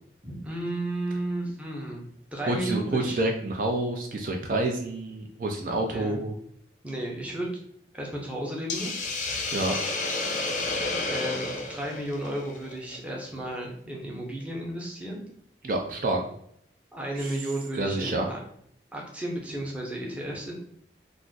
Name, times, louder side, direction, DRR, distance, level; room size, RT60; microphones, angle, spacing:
voice 1, 0.2-3.2 5.9-6.2 6.8-7.5 7.9-8.9 11.1-15.2 16.9-18.4 18.9-20.5, right 1 dB, 10° right, -2 dB, 0.6 m, -33 dB
voice 2, 2.5-6.3 9.5-9.8 15.6-16.2 17.2-17.3 17.8-18.3, right 2 dB, 50° right, 2 dB, 0.4 m, -28 dB
Hiss, 8.7-13.0, left 3 dB, 45° left, 0.5 m, -31 dB
2.5 x 2.4 x 3.7 m, 0.68 s
head